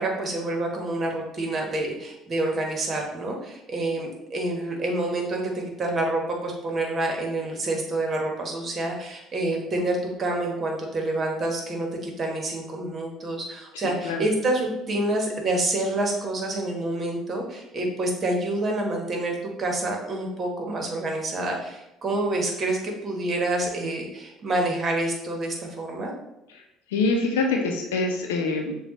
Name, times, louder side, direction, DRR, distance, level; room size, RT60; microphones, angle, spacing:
voice 1, 0.0-26.1, right 2 dB, 40° right, 1 dB, 1.3 m, -27 dB
voice 2, 13.7-14.3 26.5-26.6 26.9-28.9, left 3 dB, 85° left, 2 dB, 0.6 m, -25 dB
6.7 x 2.4 x 3.0 m, 0.91 s
hypercardioid pair, 60°, 0 cm